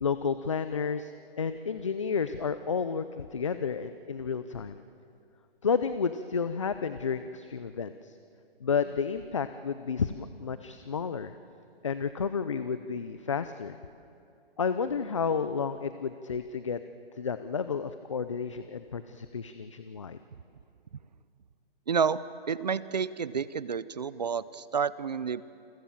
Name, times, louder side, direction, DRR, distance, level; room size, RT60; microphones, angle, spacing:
voice 1, 0.0-1.1 1.4-4.8 5.6-8.2 8.6-11.3 11.8-13.8 14.6-16.8 17.1-20.2, left 6 dB, 30° left, 11 dB, 0.5 m, -31 dB
voice 2, 21.9-22.2 22.5-25.4, right 6 dB, 40° right, 17 dB, 0.6 m, -29 dB
29.0 x 23.0 x 7.2 m, 2.5 s
hypercardioid pair, 170°, 31 cm